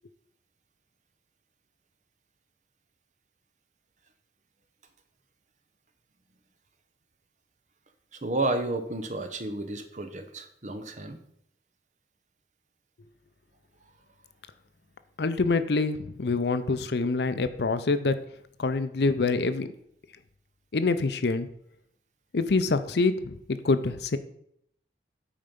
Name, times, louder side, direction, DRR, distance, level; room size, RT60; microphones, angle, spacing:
voice 1, 8.2-11.2, right 2 dB, 40° right, 8 dB, 0.8 m, -31 dB
voice 2, 15.2-18.2 18.6-19.7 20.7-21.5 22.3-24.2, left 3 dB, 70° left, 11 dB, 0.6 m, -26 dB
8.8 x 4.4 x 5.2 m, 0.71 s
head